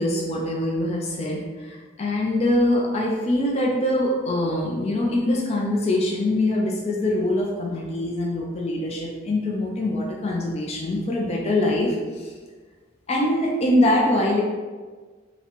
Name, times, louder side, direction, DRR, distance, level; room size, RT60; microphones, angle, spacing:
voice 1, 0.0-12.3 13.1-14.4, left 1 dB, 35° left, -1 dB, 0.4 m, -23 dB
4.0 x 2.1 x 2.9 m, 1.4 s
head